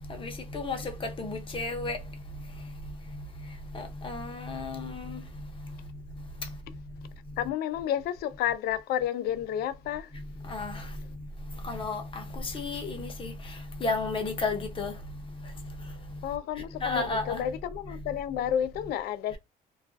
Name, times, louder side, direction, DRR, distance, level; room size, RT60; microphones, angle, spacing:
voice 1, 0.2-2.0 3.7-5.2 10.5-10.7 11.7-12.0 12.5-13.3 13.8-14.9 16.8-17.4, left 3 dB, 30° left, 0.7 m, -32 dB
voice 2, 7.4-10.1 16.2-19.4, left 10 dB, 70° left, 0.4 m, -31 dB
2.3 x 2.2 x 2.4 m
cardioid pair, 110°, 17 cm